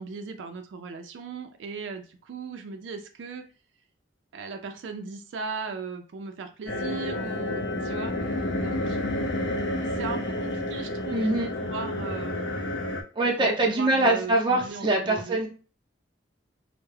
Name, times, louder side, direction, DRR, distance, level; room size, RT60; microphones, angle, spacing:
voice 1, 0.0-3.5 4.3-9.0 9.7-12.5 13.4-15.4, right 4 dB, 85° right, 6 dB, 0.3 m, -38 dB
sound 1, 6.7-13.0, left 1 dB, 85° left, 0.5 m, -30 dB
voice 2, 11.1-11.5 13.1-15.5, right 2 dB, 25° right, 0 dB, 0.5 m, -23 dB
2.2 x 2.0 x 3.1 m, 0.37 s
head